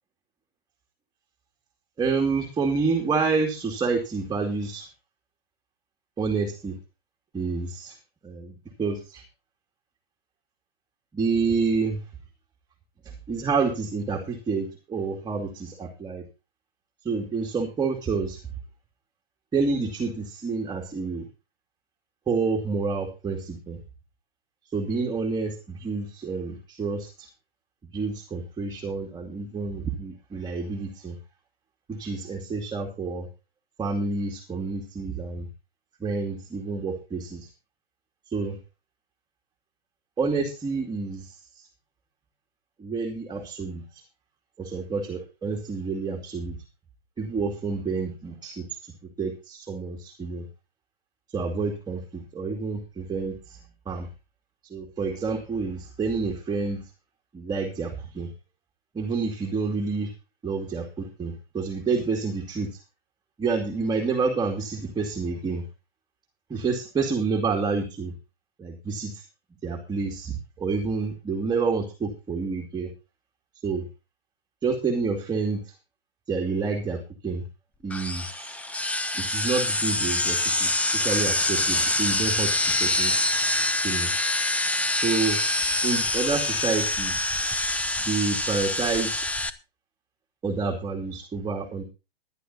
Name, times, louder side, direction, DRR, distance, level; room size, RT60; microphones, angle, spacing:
voice 1, 2.0-4.9 6.2-6.8 7.3-8.0 8.2-9.2 11.1-12.0 13.0-16.2 17.0-18.4 19.5-21.2 22.3-23.8 24.7-27.3 27.9-31.2 31.9-33.3 33.8-35.5 36.0-37.5 38.3-38.6 40.2-41.7 42.8-44.0 44.6-46.5 47.2-48.9 49.2-50.4 51.3-53.6 53.9-54.1 54.7-56.8 57.3-58.3 58.9-60.1 60.4-62.8 63.4-65.6 66.5-68.1 68.6-69.2 69.6-72.9 73.6-73.8 74.6-75.7 76.3-77.4 77.8-78.6 79.2-82.5 82.8-83.2 83.8-84.1 84.9-85.4 85.8-87.4 88.1-89.3 90.4-91.8, right 4 dB, 15° right, 2 dB, 2.5 m, -28 dB
sound 1, 77.9-89.5, left 2 dB, 5° left, 0.8 m, -25 dB
19.5 x 11.0 x 2.8 m, 0.29 s
hypercardioid pair, 130°, 30 cm